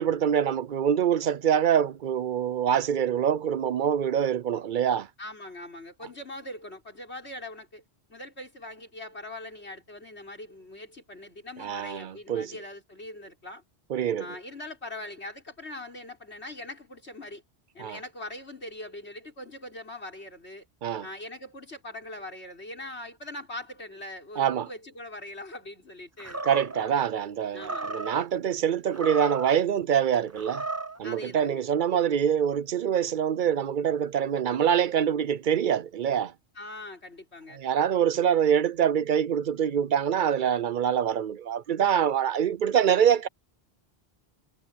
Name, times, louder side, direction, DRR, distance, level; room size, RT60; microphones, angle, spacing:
voice 1, 0.0-5.1 11.6-12.5 13.9-14.3 17.8-18.0 20.8-21.1 24.4-24.7 26.4-30.6 31.0-36.3 37.6-43.3, right 9 dB, 55° right, 0.7 m, -25 dB
voice 2, 5.2-7.8 8.1-13.6 14.2-17.4 17.7-20.7 21.0-26.4 27.5-28.0 31.0-31.6 36.5-37.6, left 1 dB, 85° left, 6.1 m, -41 dB
Animal, 26.2-26.9 27.6-28.3 28.9-29.6 30.3-31.0, right 3 dB, 15° right, 0.8 m, -34 dB
omnidirectional pair, 1.1 m